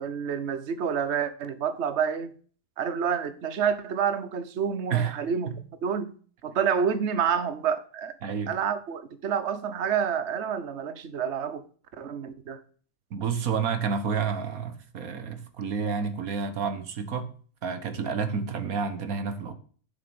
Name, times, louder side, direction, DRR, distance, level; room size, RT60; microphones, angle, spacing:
voice 1, 0.0-2.3 2.8-5.5 5.8-6.1 6.4-8.1 8.5-11.6 12.0-12.6, right 7 dB, 55° right, 1.2 m, -28 dB
voice 2, 8.2-8.5 13.1-17.3 17.6-19.5, right 6 dB, 80° right, 1.7 m, -29 dB
7.7 x 7.3 x 7.0 m
omnidirectional pair, 1.5 m